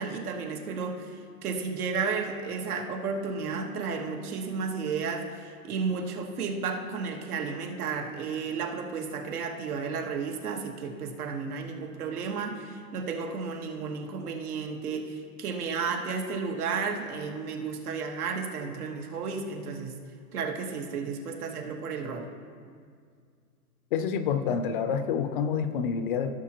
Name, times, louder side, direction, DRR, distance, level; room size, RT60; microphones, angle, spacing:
voice 1, 0.0-20.0 20.3-22.3, right 5 dB, 75° right, 3 dB, 1.5 m, -33 dB
voice 2, 23.9-26.3, left 7 dB, 40° left, 10 dB, 0.4 m, -28 dB
16.5 x 6.3 x 2.9 m, 2.1 s
hypercardioid pair, 135°, 45 cm